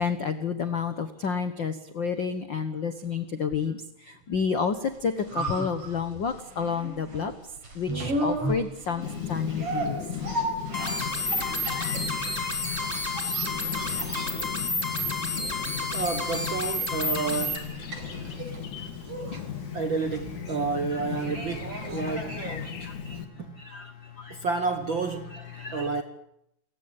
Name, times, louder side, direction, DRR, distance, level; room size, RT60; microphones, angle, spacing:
voice 1, 0.0-3.8 4.3-7.3 7.7-10.0 19.3-19.4 20.9-21.0 21.3-21.4 22.0-22.1 22.4-23.2 23.6-23.9 24.2-24.4 25.6-25.9, left 6 dB, 80° left, 1.0 m, -30 dB
sound 1, 4.8-22.8 23.1-23.2, right 1 dB, 40° right, 5.7 m, -36 dB
Chirp tweet, 9.0-23.2, left 7 dB, 60° left, 3.4 m, -36 dB
sound 2, 10.7-17.6, left 2 dB, 10° left, 3.5 m, -30 dB
voice 2, 15.9-17.7 19.7-22.7 23.4-23.5 24.3-25.4 25.7-26.0, right 4 dB, 60° right, 1.3 m, -30 dB
29.0 x 15.5 x 9.7 m
omnidirectional pair, 4.1 m